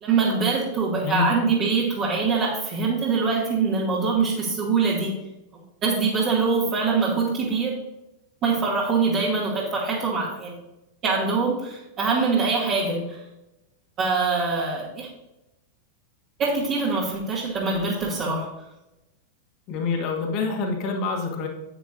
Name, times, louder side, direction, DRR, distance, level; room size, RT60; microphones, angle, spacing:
voice 1, 0.0-5.1 5.8-7.8 8.4-10.6 11.0-13.2 14.0-15.1 16.4-18.5, right 4 dB, 35° right, -7 dB, 2.3 m, -23 dB
voice 2, 1.0-1.3 19.7-21.5, left 4 dB, 40° left, 2 dB, 2.0 m, -26 dB
9.8 x 9.2 x 2.7 m, 0.93 s
figure-of-eight pair, 90°, 0 cm